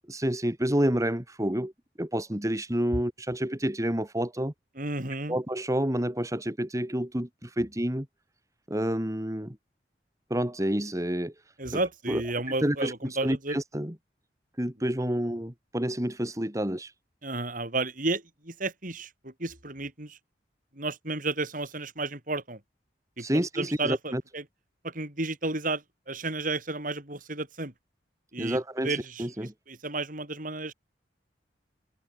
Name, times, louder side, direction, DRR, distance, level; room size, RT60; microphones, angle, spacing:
voice 1, 0.1-1.7 2.0-4.5 5.3-8.1 8.7-9.6 10.3-11.3 12.1-12.2 12.6-12.9 13.2-13.9 14.6-16.9 23.2-24.2 28.4-29.5, right 1 dB, 20° right, 2.3 m, -29 dB
voice 2, 4.8-5.4 11.6-13.6 14.8-15.2 17.2-20.2 20.7-22.6 23.2-24.4 24.8-27.7 28.3-30.7, right 2 dB, 50° right, 5.8 m, -33 dB
head